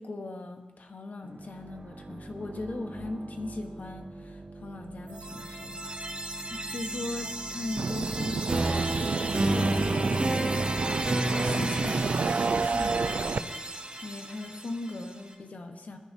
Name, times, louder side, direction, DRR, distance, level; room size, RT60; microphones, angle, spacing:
voice 1, 0.0-6.2 6.5-10.8 11.1-13.5 14.0-16.0, left 2 dB, 70° left, 4 dB, 1.4 m, -39 dB
sound 1, 1.2-12.7, right 2 dB, 60° right, 3.1 m, -46 dB
sound 2, 5.1-15.0, right 1 dB, 45° right, 2.8 m, -32 dB
sound 3, 7.8-13.4, right 4 dB, 75° right, 0.4 m, -30 dB
21.0 x 10.5 x 2.9 m, 1.3 s
cardioid pair, 45°, 3 cm